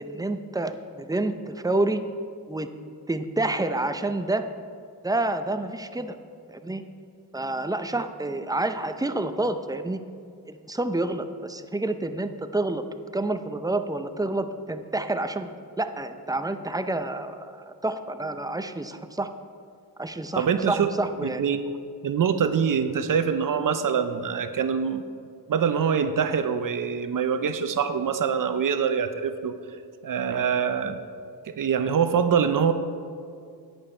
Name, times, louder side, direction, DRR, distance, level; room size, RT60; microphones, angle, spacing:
voice 1, 0.0-2.0 2.5-2.7 3.1-4.5 5.0-6.2 6.5-6.8 7.3-10.0 10.5-12.8 13.1-15.5 15.8-19.3 20.0-21.4, right 2 dB, 10° right, 9 dB, 0.5 m, -28 dB
voice 2, 20.4-20.9 21.2-21.6 22.0-25.0 25.5-29.5 30.0-31.0 31.6-32.7, right 7 dB, 55° right, 9 dB, 0.7 m, -24 dB
10.5 x 8.9 x 4.4 m, 2.3 s
cardioid pair, 95°, 39 cm